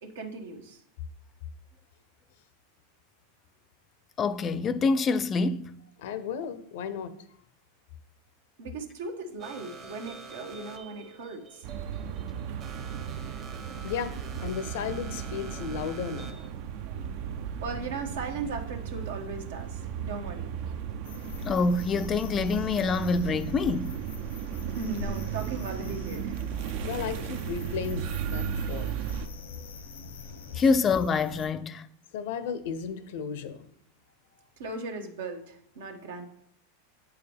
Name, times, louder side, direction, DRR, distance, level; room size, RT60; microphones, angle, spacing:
voice 1, 0.0-0.8 8.6-11.7 17.6-20.5 24.8-26.4 34.6-36.3, right 3 dB, 80° right, 1.1 m, -37 dB
voice 2, 4.2-5.8 21.5-24.0 30.5-31.9, left 4 dB, 30° left, 0.3 m, -26 dB
voice 3, 6.0-7.1 13.8-16.3 26.8-28.9 32.1-33.7, left 7 dB, 70° left, 0.6 m, -34 dB
sound 1, 9.4-16.5, right 4 dB, 40° right, 1.0 m, -46 dB
sound 2, 11.6-29.3, right 8 dB, 55° right, 0.5 m, -35 dB
sound 3, 21.0-31.5, left 4 dB, 85° left, 1.0 m, -43 dB
7.9 x 4.7 x 3.4 m
hypercardioid pair, 110°, 0 cm